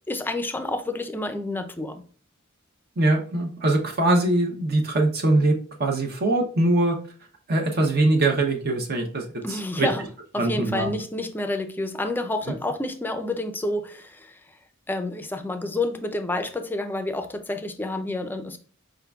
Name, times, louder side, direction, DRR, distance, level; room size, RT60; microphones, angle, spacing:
voice 1, 0.1-2.0 9.4-10.1 10.3-14.4 14.9-18.6, left 2 dB, 10° left, 0.4 m, -29 dB
voice 2, 3.0-7.0 7.5-9.9 10.4-10.9, right 2 dB, 50° right, 0.7 m, -22 dB
5.0 x 3.7 x 2.3 m
head